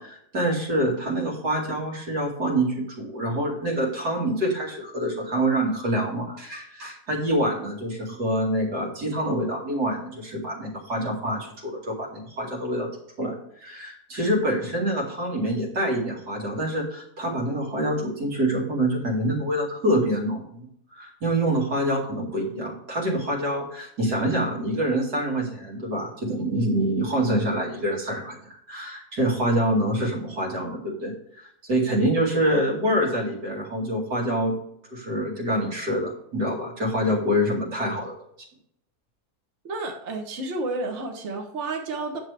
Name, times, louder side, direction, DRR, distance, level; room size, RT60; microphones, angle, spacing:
voice 1, 0.0-12.9 13.2-13.3 13.6-20.7 20.9-34.6 34.9-38.1, right 1 dB, 80° right, -2 dB, 2.9 m, -26 dB
voice 2, 39.6-42.2, right 2 dB, 50° right, 2 dB, 1.4 m, -31 dB
9.7 x 7.1 x 3.4 m, 0.72 s
omnidirectional pair, 1.7 m